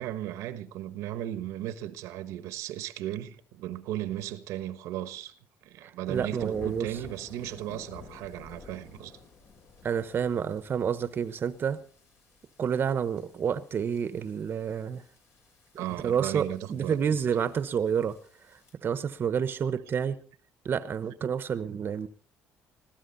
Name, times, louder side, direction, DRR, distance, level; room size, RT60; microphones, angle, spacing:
voice 1, 0.0-5.3 5.6-9.2 15.8-17.0, right 13 dB, 85° right, 1.2 m, -36 dB
voice 2, 5.8-7.0 9.8-11.8 12.6-15.0 16.0-18.2 18.5-20.2 20.6-22.1, right 7 dB, 45° right, 1.1 m, -29 dB
sound 1, 6.1-18.7, left 4 dB, 55° left, 7.1 m, -52 dB
21.0 x 15.0 x 4.1 m
cardioid pair, 95°, 5 cm